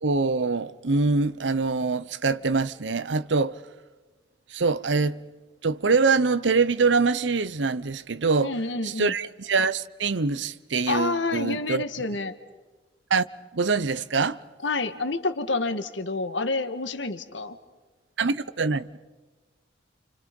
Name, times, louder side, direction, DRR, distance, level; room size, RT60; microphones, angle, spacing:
voice 1, 0.0-3.5 4.5-5.2 5.6-8.5 8.8-11.8 13.1-13.2 13.5-14.4 18.2-18.9, right 4 dB, 80° right, 0.8 m, -24 dB
voice 2, 8.4-9.1 10.9-12.3 14.6-17.6, left 3 dB, 80° left, 1.7 m, -28 dB
29.5 x 28.5 x 5.4 m
head